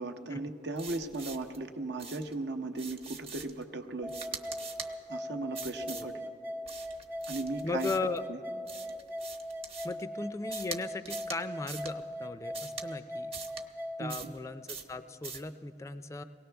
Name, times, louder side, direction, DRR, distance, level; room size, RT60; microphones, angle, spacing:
voice 1, 0.0-4.1 5.1-6.1 7.3-7.9 8.3-8.4 14.0-14.3, right 2 dB, 65° right, 5 dB, 0.9 m, -37 dB
sound 1, 0.8-1.6 2.0-2.3 2.8-3.6 4.1-4.9 5.5-6.1 6.7-8.2 8.7-10.0 10.5-10.8 11.1-11.4 11.7-11.9 12.5-12.9 13.3-13.6 14.1-14.4 14.7-14.9 15.2-15.5, right 5 dB, 35° right, 1.0 m, -43 dB
sound 2, 4.0-14.0, equal, 10° right, 0.7 m, -40 dB
voice 2, 7.6-8.2 9.8-13.3 14.0-16.2, left 3 dB, 15° left, 10 dB, 0.4 m, -37 dB
23.0 x 18.5 x 3.4 m, 2.5 s
head